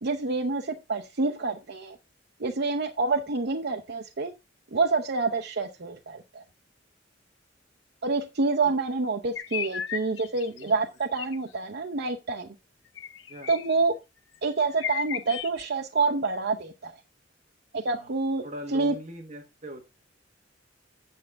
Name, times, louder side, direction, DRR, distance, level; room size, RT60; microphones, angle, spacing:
voice 1, 0.0-2.0 2.4-4.3 4.7-6.4 8.0-12.5 13.5-13.9 14.4-16.9 17.7-18.4 18.7-18.9, right 3 dB, 60° right, 0.7 m, -27 dB
sound 1, 9.3-10.7 11.1-11.4 13.0-13.8 14.3-14.4 14.7-15.6, left 9 dB, 75° left, 0.7 m, -35 dB
voice 2, 18.4-19.8, right 1 dB, 40° right, 1.3 m, -40 dB
8.3 x 7.7 x 3.4 m
head